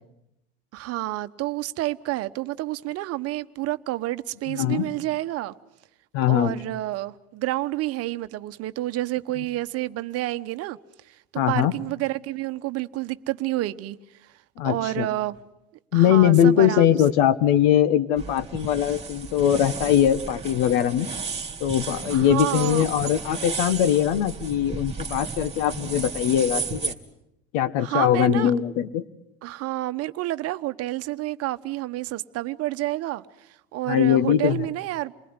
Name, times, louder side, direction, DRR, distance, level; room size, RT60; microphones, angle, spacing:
voice 1, 0.7-5.5 6.3-10.8 11.1-14.0 14.6-15.4 15.9-17.0 22.1-22.8 27.8-28.5 29.4-33.2 33.7-35.1, right 17 dB, 55° right, 1.1 m, -29 dB
voice 2, 4.5-4.9 6.1-6.5 11.4-11.7 14.6-15.1 15.9-21.1 21.6-26.9 27.5-29.0 33.9-34.6, left 10 dB, 70° left, 1.5 m, -21 dB
sound 1, 18.2-26.9, right 5 dB, 20° right, 3.1 m, -34 dB
28.5 x 20.0 x 9.7 m
hypercardioid pair, 90°, 30 cm